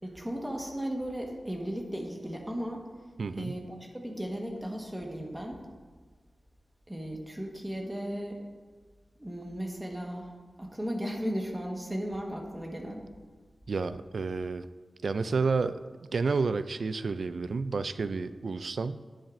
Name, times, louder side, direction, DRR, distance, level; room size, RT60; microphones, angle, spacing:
voice 1, 0.0-2.8 3.4-5.6 6.9-8.4 9.2-10.3 10.6-13.0, equal, 10° right, 1 dB, 1.3 m, -36 dB
voice 2, 3.2-3.5 13.7-14.7 15.0-19.0, right 4 dB, 75° right, 12 dB, 0.3 m, -30 dB
10.5 x 9.9 x 2.5 m, 1.4 s
wide cardioid pair, 105°, 0 cm